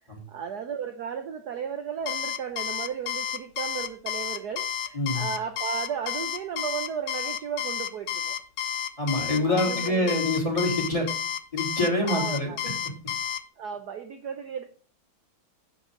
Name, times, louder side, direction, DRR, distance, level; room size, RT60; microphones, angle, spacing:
voice 1, 0.3-8.4 9.4-10.2 12.0-12.6 13.6-14.6, right 7 dB, 60° right, 6 dB, 1.2 m, -34 dB
Alarm, 2.1-13.4, left 9 dB, 80° left, 1.6 m, -31 dB
voice 2, 4.9-5.3 9.0-11.1 11.5-12.5, left 1 dB, 15° left, 0 dB, 3.6 m, -25 dB
11.5 x 8.1 x 3.9 m, 0.39 s
omnidirectional pair, 2.3 m